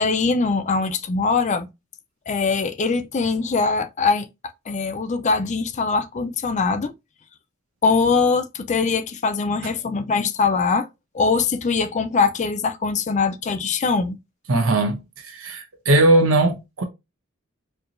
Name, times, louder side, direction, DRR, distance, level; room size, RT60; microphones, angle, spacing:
voice 1, 0.0-1.7 2.3-4.3 4.7-6.9 7.8-10.9 11.1-14.2, left 4 dB, 35° left, 0.5 m, -22 dB
voice 2, 14.5-16.8, right 2 dB, 85° right, 0.9 m, -19 dB
4.6 x 2.8 x 2.5 m
head